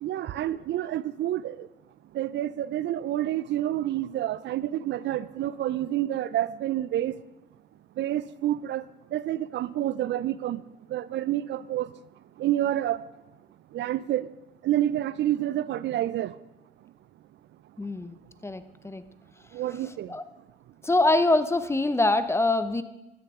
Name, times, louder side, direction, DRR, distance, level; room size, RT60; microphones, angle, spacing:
voice 1, 0.0-1.7 2.1-7.2 8.0-8.8 9.1-10.6 10.9-11.9 12.4-13.0 13.7-14.3 14.6-16.3 19.5-20.1, right 13 dB, 65° right, 0.4 m, -28 dB
voice 2, 17.8-18.2 18.4-19.0 20.1-20.2 20.8-22.8, left 2 dB, 15° left, 0.6 m, -24 dB
13.0 x 9.8 x 3.6 m
cardioid pair, 90°, 20 cm